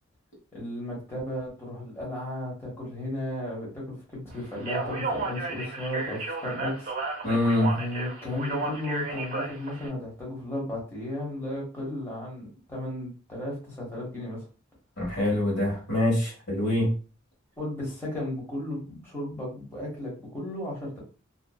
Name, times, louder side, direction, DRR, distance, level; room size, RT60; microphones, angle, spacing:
voice 1, 0.5-6.7 7.7-14.4 17.6-21.0, left 1 dB, 10° left, -5 dB, 1.0 m, -34 dB
Speech, 4.5-9.9, right 3 dB, 40° right, 0.9 m, -33 dB
voice 2, 7.2-7.7 15.0-16.9, left 1 dB, 60° left, -2 dB, 1.2 m, -24 dB
2.5 x 2.2 x 2.2 m, 0.35 s
head